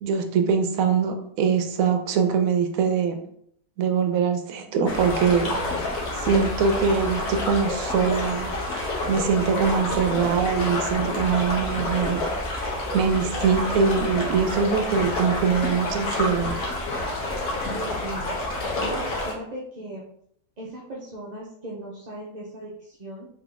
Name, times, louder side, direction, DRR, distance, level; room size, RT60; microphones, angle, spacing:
voice 1, 0.0-3.2 3.8-5.6 6.2-12.2 12.5-16.6, right 6 dB, 75° right, 6 dB, 1.0 m, -23 dB
sound 1, 4.9-19.3, left 2 dB, 65° left, 1.5 m, -28 dB
voice 2, 17.7-18.3 18.8-20.1 20.6-23.3, right 1 dB, 35° right, -5 dB, 0.7 m, -37 dB
3.5 x 3.5 x 3.9 m, 0.69 s
omnidirectional pair, 1.6 m